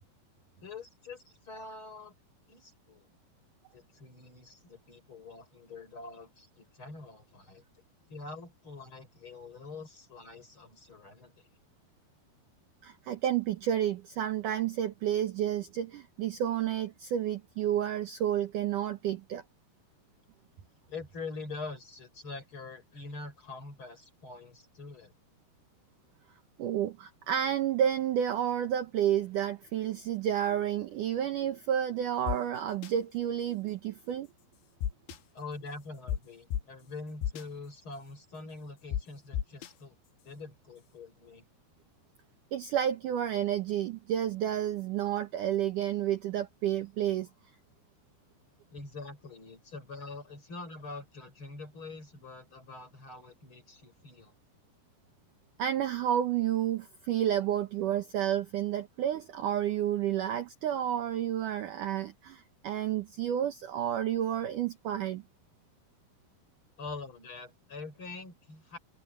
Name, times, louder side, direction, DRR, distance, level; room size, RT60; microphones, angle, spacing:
voice 1, 0.6-2.1 2.5-3.1 3.7-7.6 8.1-11.5 20.9-25.2 35.3-40.0 40.2-41.5 48.7-54.3 66.8-68.8, left 3 dB, 30° left, 6.5 m, -45 dB
voice 2, 12.8-19.4 26.6-34.3 42.5-47.3 55.6-65.2, right 10 dB, 70° right, 2.1 m, -30 dB
sound 1, 32.3-32.4 32.8-32.9 34.8-35.2 36.1-36.2 36.5-36.6 37.2-37.4 38.9-39.0 39.3-39.7, left 10 dB, 85° left, 3.7 m, -31 dB
omnidirectional pair, 4.9 m